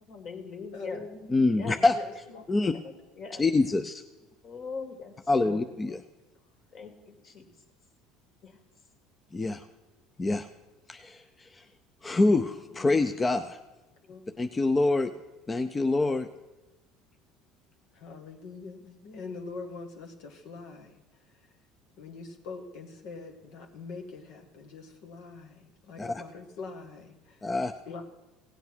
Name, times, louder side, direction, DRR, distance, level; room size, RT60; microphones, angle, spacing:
voice 1, 0.1-1.1 1.5-1.8 2.7-3.4 4.4-5.6 6.7-7.6 8.4-8.6, left 4 dB, 50° left, 5 dB, 2.3 m, -41 dB
voice 2, 0.7-2.7 5.8-6.0 12.2-13.1 14.0-14.5 17.9-21.0 21.4-21.5 22.0-27.5 27.9-28.0, left 4 dB, 70° left, 3 dB, 1.5 m, -44 dB
voice 3, 1.3-1.9 2.5-2.7 3.4-4.0 5.3-6.0 9.3-9.6 10.2-10.5 10.9-11.6 12.0-13.6 14.4-15.1 15.5-16.3 26.0-26.1 27.4-27.7, left 2 dB, 20° left, 7 dB, 0.6 m, -25 dB
16.5 x 8.0 x 6.2 m, 1.1 s
supercardioid pair, 100°, 0 cm